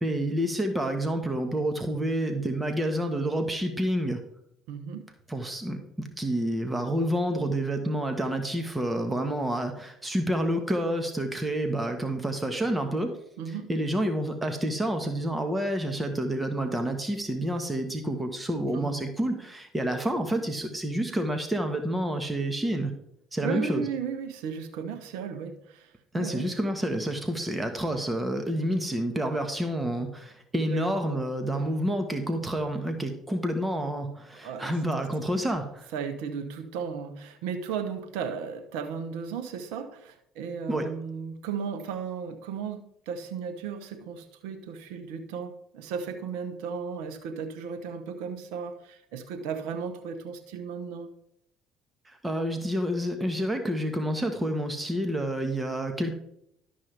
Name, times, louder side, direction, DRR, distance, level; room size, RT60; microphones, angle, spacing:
voice 1, 0.0-4.2 5.3-13.1 13.5-22.9 23.3-23.9 26.1-35.9 40.7-40.9 52.1-56.1, right 1 dB, 15° right, 1.4 m, -29 dB
voice 2, 4.7-5.1 13.4-13.7 18.7-19.0 23.4-26.5 30.7-30.9 34.4-34.8 35.9-51.1, right 6 dB, 80° right, 0.9 m, -35 dB
12.0 x 5.6 x 3.4 m
hypercardioid pair, 65°, 0 cm